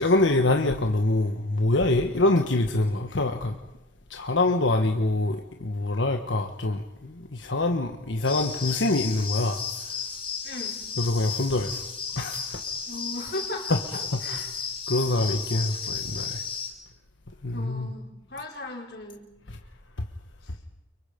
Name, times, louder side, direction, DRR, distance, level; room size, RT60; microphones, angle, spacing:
voice 1, 0.0-3.6 4.1-10.0 11.0-11.9 12.2-12.6 13.7-13.8 14.1-14.4 14.9-16.4 17.4-17.9 19.5-19.6, left 2 dB, 85° left, 4 dB, 1.4 m, -25 dB
sound 1, 8.2-16.7, left 6 dB, 25° left, 5.6 m, -34 dB
voice 2, 10.4-10.8 12.9-14.5 17.5-19.2, left 2 dB, 60° left, -1 dB, 5.0 m, -37 dB
29.5 x 24.5 x 5.2 m, 0.94 s
head